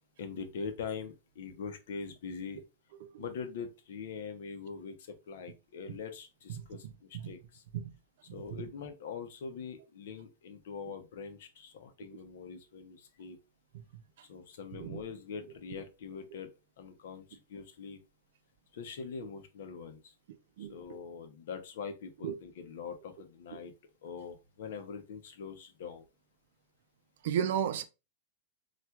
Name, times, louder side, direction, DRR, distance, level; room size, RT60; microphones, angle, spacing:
voice 1, 0.2-2.6 3.2-7.6 8.3-13.4 14.3-16.5 16.8-18.0 18.7-20.1 20.6-23.7 24.0-26.1, left 5 dB, 65° left, 0.7 m, -43 dB
voice 2, 6.6-6.9 7.2-7.3 7.7-8.0 8.3-8.4 14.7-15.0 20.6-20.8 22.2-22.3 23.5-23.6 27.2-27.8, right 9 dB, 65° right, 0.4 m, -34 dB
4.3 x 2.4 x 2.3 m
supercardioid pair, 155°, 0 cm